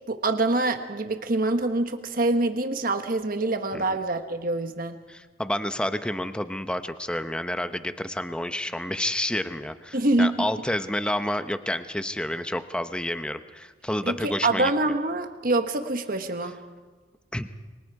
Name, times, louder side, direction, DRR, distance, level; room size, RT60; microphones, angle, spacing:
voice 1, 0.1-5.0 9.9-10.5 14.0-16.6, right 2 dB, 50° right, 7 dB, 1.3 m, -25 dB
voice 2, 5.1-14.7 17.3-17.5, left 1 dB, 5° left, 9 dB, 0.9 m, -29 dB
30.0 x 24.0 x 4.8 m, 1.4 s
head